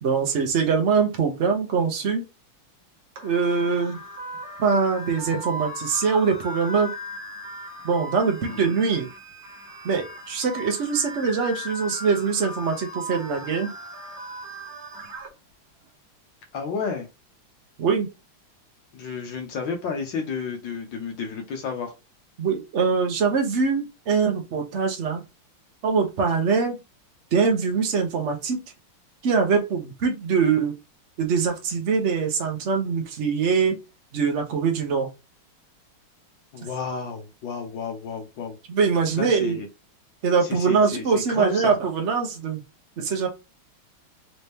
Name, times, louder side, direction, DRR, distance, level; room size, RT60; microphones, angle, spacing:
voice 1, 0.0-2.2 3.2-4.0 4.6-6.9 7.8-9.1 9.8-13.7 17.8-18.1 22.4-25.2 25.8-26.8 27.3-28.6 29.2-30.7 31.2-33.8 34.1-35.1 38.7-39.6 40.2-42.6 43.0-43.3, right 5 dB, 85° right, 3 dB, 0.6 m, -23 dB
sound 1, 3.2-15.3, equal, 50° right, 1.4 m, -38 dB
voice 2, 16.5-17.1 18.9-21.9 36.5-38.6 39.2-39.7 40.4-41.8, left 5 dB, 65° left, 3 dB, 1.5 m, -31 dB
4.2 x 2.8 x 3.4 m, 0.26 s
omnidirectional pair, 2.4 m